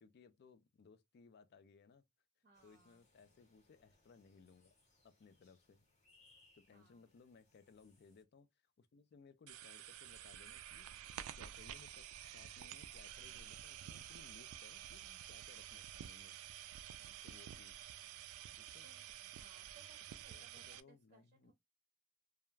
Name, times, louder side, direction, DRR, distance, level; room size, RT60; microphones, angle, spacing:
voice 1, 0.0-2.0 2.6-4.7 5.0-5.9 6.5-16.4 17.2-17.8 18.6-18.9 20.3-21.5, left 5 dB, 50° left, 0.4 m, -64 dB
voice 2, 2.4-3.0 6.7-7.1 17.0-17.4 18.8-19.0 19.4-21.5, right 4 dB, 40° right, 0.6 m, -68 dB
sound 1, 2.5-8.2, left 2 dB, 35° left, 0.8 m, -73 dB
sound 2, 9.5-20.8, right 11 dB, 85° right, 0.3 m, -51 dB
2.3 x 2.1 x 3.0 m
head